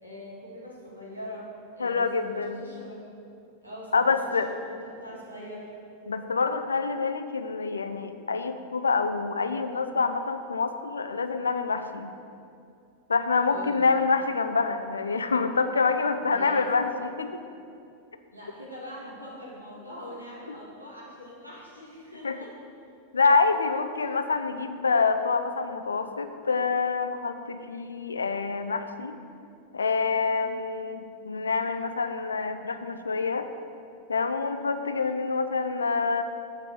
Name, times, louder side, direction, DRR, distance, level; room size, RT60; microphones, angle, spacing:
voice 1, 0.0-3.1 3.6-4.1 4.4-5.7 13.5-13.9 16.2-16.6 18.3-22.5, equal, 85° right, -6 dB, 2.2 m, -42 dB
voice 2, 1.8-2.6 3.9-4.5 6.1-12.1 13.1-17.4 22.2-22.4 23.1-29.2 29.7-33.5 34.1-36.2, left 4 dB, 75° left, 9 dB, 0.5 m, -26 dB
8.2 x 5.1 x 6.2 m, 2.5 s
figure-of-eight pair, 90°, 0 cm